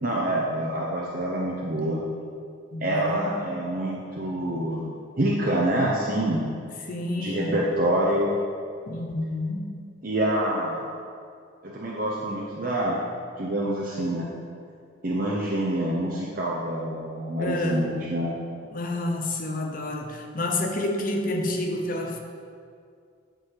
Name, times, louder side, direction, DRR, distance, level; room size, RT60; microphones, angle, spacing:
voice 1, 0.0-2.0 2.8-4.8 5.2-6.4 7.2-8.3 10.0-10.9 11.6-13.0 13.4-14.3 15.0-18.3, right 1 dB, 45° right, -4 dB, 0.7 m, -26 dB
voice 2, 2.7-3.4 6.8-7.6 8.9-9.8 17.4-18.0 18.7-22.2, left 1 dB, 45° left, 2 dB, 0.7 m, -29 dB
8.9 x 3.9 x 4.8 m, 2.3 s
head